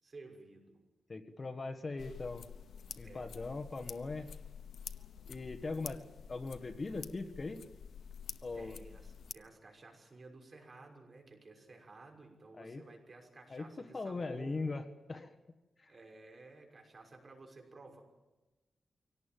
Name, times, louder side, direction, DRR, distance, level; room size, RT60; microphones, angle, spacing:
voice 1, 0.0-0.8 3.0-3.3 8.5-14.6 15.9-18.0, right 3 dB, 40° right, 2 dB, 6.1 m, -54 dB
voice 2, 1.1-2.5 3.0-4.3 5.3-6.0 6.3-7.6 8.4-8.7 12.5-12.8 13.5-13.6 13.9-14.8 15.1-15.3 15.8-15.9, left 3 dB, 35° left, 9 dB, 1.5 m, -40 dB
sound 1, 2.0-9.3, left 7 dB, 85° left, 1.0 m, -49 dB
24.5 x 18.0 x 9.2 m, 1.1 s
wide cardioid pair, 110°, 0 cm